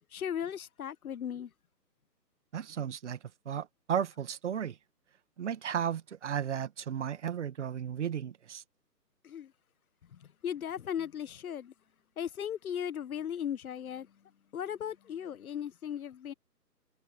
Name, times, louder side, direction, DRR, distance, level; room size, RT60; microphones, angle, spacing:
voice 1, 0.1-1.5 9.2-9.5 10.1-11.7 12.2-14.1 14.5-16.3, left 9 dB, 60° left, 0.9 m, -37 dB
voice 2, 2.5-3.2 3.5-4.8 5.4-8.6, right 8 dB, 45° right, 1.8 m, -34 dB
hypercardioid pair, 155°, 49 cm